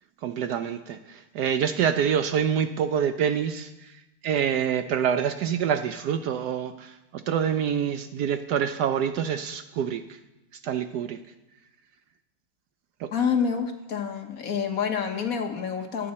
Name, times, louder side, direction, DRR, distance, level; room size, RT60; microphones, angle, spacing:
voice 1, 0.2-3.9 4.2-10.2 10.6-11.2 13.0-13.1, right 8 dB, 70° right, 9 dB, 1.0 m, -26 dB
voice 2, 13.1-16.1, left 6 dB, 55° left, 5 dB, 1.2 m, -27 dB
19.0 x 8.7 x 4.2 m, 0.99 s
omnidirectional pair, 2.1 m